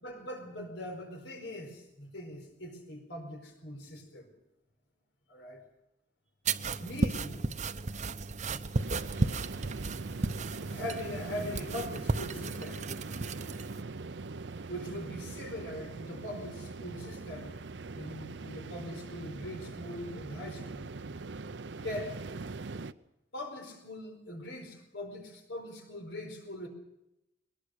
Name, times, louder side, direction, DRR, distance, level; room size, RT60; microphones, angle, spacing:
voice 1, 0.0-4.3 5.3-5.6 6.8-7.6 10.7-12.9 14.7-17.5 17.9-21.0 21.8-22.2 23.3-26.7, left 1 dB, 85° left, 5 dB, 4.5 m, -41 dB
sound 1, 6.5-13.8, right 3 dB, 40° right, 0.8 m, -34 dB
sound 2, 8.7-22.9, right 3 dB, 85° right, 0.7 m, -42 dB
21.5 x 20.0 x 6.6 m, 0.88 s
head